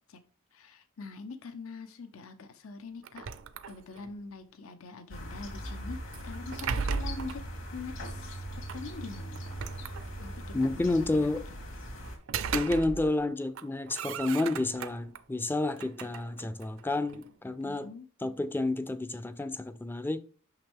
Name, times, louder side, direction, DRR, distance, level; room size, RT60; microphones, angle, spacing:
voice 1, 0.5-3.3 3.7-7.4 7.7-9.6 10.2-10.9 11.2-11.6 17.6-18.1, left 4 dB, 80° left, 0.8 m, -44 dB
sound 1, 3.0-4.2 6.1-7.5 8.7-8.8 9.4-10.4 12.0-13.3 13.5-15.2 15.7-17.3, right 6 dB, 65° right, 0.5 m, -37 dB
sound 2, 5.1-12.2, equal, 65° left, 2.3 m, -40 dB
voice 2, 10.5-11.4 12.5-17.9 18.2-20.2, left 2 dB, 10° left, 0.4 m, -30 dB
6.1 x 5.7 x 3.6 m
head